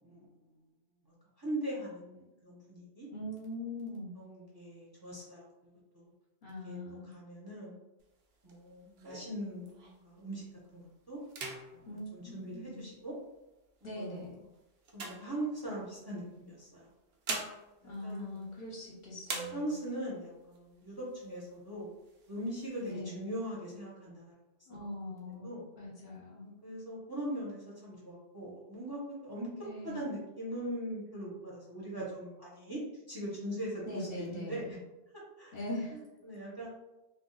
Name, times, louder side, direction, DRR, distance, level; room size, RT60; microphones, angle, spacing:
voice 1, 1.1-3.1 4.1-6.0 6.6-6.8 7.0-7.8 8.4-10.4 10.7-11.2 11.7-13.2 13.8-14.4 14.9-16.9 17.8-18.4 19.5-21.9 22.3-24.3 25.1-25.6 26.4-32.8 33.1-34.8 35.1-35.5 35.9-36.7, right 1 dB, 25° right, -5 dB, 0.7 m, -41 dB
voice 2, 3.1-4.2 6.4-7.1 11.9-12.8 13.8-14.4 17.8-19.7 22.8-23.2 24.7-25.5 25.8-26.5 29.6-30.0 33.9-34.6 35.5-35.9, left 1 dB, 50° left, -5 dB, 0.8 m, -41 dB
sound 1, 8.0-10.2 10.6-10.9 11.2-13.1 13.8-16.0 16.8-18.9 19.2-20.1 20.5-20.6 20.9-21.6 22.0-22.9, right 3 dB, 70° right, 0.8 m, -44 dB
2.3 x 2.3 x 3.7 m, 0.99 s
omnidirectional pair, 1.1 m